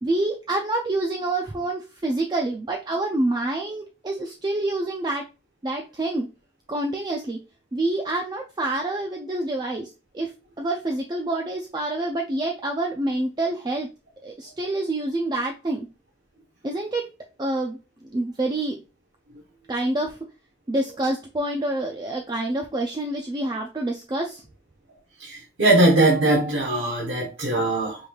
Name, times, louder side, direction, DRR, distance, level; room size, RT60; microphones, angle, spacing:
voice 1, 0.0-5.2 5.6-6.3 6.7-7.4 7.7-13.9 14.2-15.9 16.6-17.1 17.4-17.8 18.1-18.8 19.7-20.2 20.7-24.4, right 2 dB, 20° right, 0.3 m, -27 dB
voice 2, 25.2-28.0, right 2 dB, 70° right, 1.0 m, -20 dB
5.1 x 3.1 x 2.3 m
head